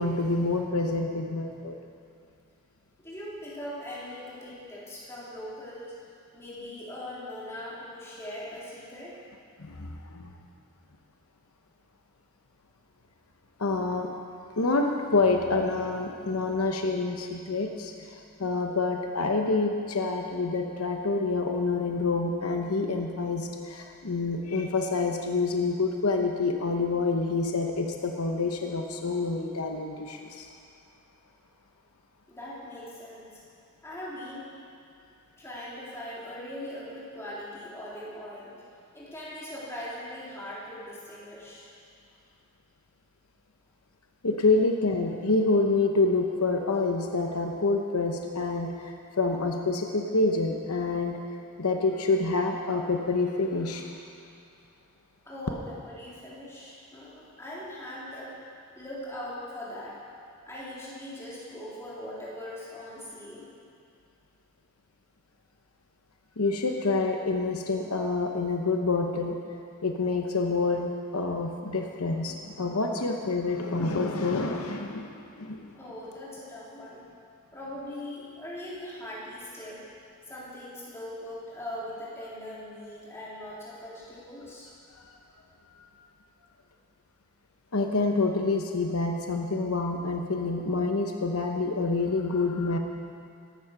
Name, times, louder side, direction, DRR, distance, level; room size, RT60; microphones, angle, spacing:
voice 1, 0.0-1.8 9.6-10.3 13.6-14.1 14.6-30.5 44.2-51.2 51.6-53.9 66.4-69.4 69.8-75.7 85.0-85.1 85.7-85.8 87.7-92.8, left 3 dB, 80° left, 3 dB, 1.0 m, -27 dB
voice 2, 3.0-5.9 6.3-9.2 32.3-33.4 33.8-34.5 35.4-38.5 38.9-41.7 55.3-58.4 58.8-60.0 60.5-63.5 75.7-77.0 77.5-79.8 80.3-84.7, left 1 dB, 10° left, -8 dB, 3.6 m, -40 dB
14.0 x 11.5 x 6.0 m, 2.5 s
head